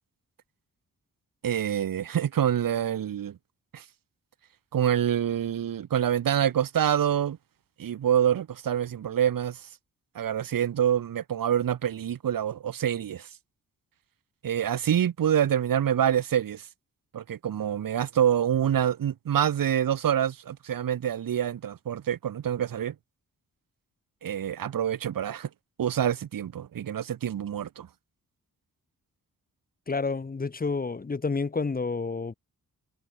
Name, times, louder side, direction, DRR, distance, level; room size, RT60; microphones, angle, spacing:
voice 1, 1.4-3.4 3.7-3.8 4.7-7.4 7.8-9.6 10.1-13.3 14.4-16.7 17.1-22.9 24.2-25.5 25.8-27.9, right 9 dB, 75° right, 1.5 m, -26 dB
voice 2, 29.9-32.3, left 4 dB, 25° left, 1.7 m, -29 dB
wide cardioid pair, 180°, 34 cm